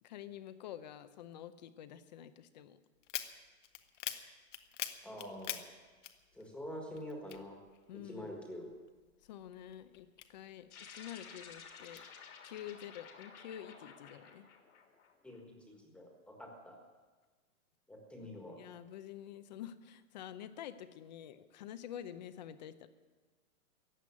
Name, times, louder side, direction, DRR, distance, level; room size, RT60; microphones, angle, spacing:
voice 1, 0.0-2.8 7.9-8.3 9.2-12.0 12.4-14.5 18.2-22.9, left 10 dB, 30° left, 13 dB, 0.7 m, -48 dB
sound 1, 3.0-6.7 6.9-8.3 8.7-10.8 11.3-12.0, left 11 dB, 55° left, 1.2 m, -44 dB
voice 2, 5.0-5.6 6.3-7.6 7.9-8.7 15.2-16.8 17.9-18.6, equal, 5° left, 1 dB, 1.6 m, -46 dB
sound 2, 10.7-15.4, left 6 dB, 75° left, 3.3 m, -53 dB
15.0 x 9.1 x 9.8 m, 1.3 s
hypercardioid pair, 160°, 43 cm